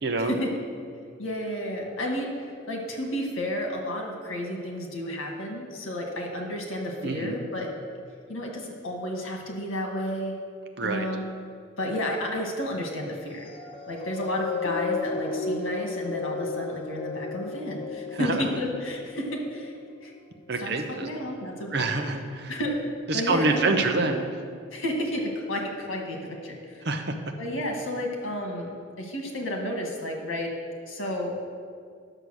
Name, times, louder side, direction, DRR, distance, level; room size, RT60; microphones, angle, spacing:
voice 1, 0.0-0.3 7.0-7.4 10.8-11.1 18.1-18.5 20.5-21.1 21.7-22.5 23.1-24.3 26.8-27.1, right 3 dB, 55° right, 5 dB, 0.9 m, -26 dB
voice 2, 1.2-2.3 2.7-7.7 8.3-10.3 10.8-11.3 11.8-13.5 13.9-19.7 20.0-20.1 20.6-21.9 22.5-23.9 24.7-26.8 27.4-30.5 30.9-31.4, left 1 dB, 85° left, 1 dB, 1.8 m, -31 dB
sound 1, 13.3-20.0 20.6-20.8, left 4 dB, 25° left, 0.6 m, -33 dB
10.0 x 6.7 x 6.3 m, 2.2 s
head